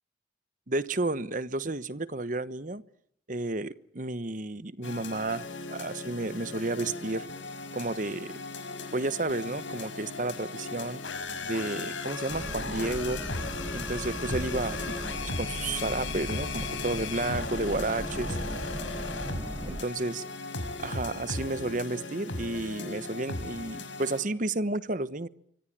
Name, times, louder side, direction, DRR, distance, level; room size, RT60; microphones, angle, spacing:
voice 1, 0.7-2.8 3.3-7.3 7.7-8.3 8.9-11.0 11.4-13.2 13.7-15.0 15.3-18.4 19.7-20.2 20.8-25.3, right 2 dB, 45° right, 15 dB, 1.1 m, -32 dB
sound 1, 4.8-24.2, left 3 dB, 80° left, 5.9 m, -37 dB
Boat Water vehicle, 12.3-19.8, equal, 15° right, 1.7 m, -38 dB
26.5 x 24.5 x 7.6 m, 0.70 s
head